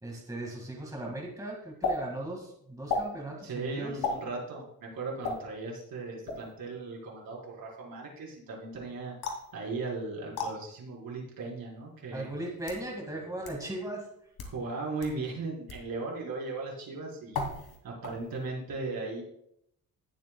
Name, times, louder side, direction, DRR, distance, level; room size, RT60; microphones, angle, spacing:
voice 1, 0.0-3.9 12.1-14.1, right 1 dB, 10° right, -1 dB, 1.9 m, -38 dB
sound 1, 1.8-2.0 2.9-3.1 4.0-4.2 5.2-5.4 6.3-6.5 9.2-9.5 10.3-10.5 11.5-11.6 12.4-12.8 13.4-13.5 14.3-14.6 15.0-15.1 15.7-15.9 17.3-17.8 18.0-18.4, left 3 dB, 80° left, 2.6 m, -33 dB
voice 2, 3.4-12.3 14.4-19.2, right 3 dB, 70° right, -4 dB, 4.5 m, -37 dB
18.5 x 7.6 x 2.3 m, 0.73 s
cardioid pair, 135°, 36 cm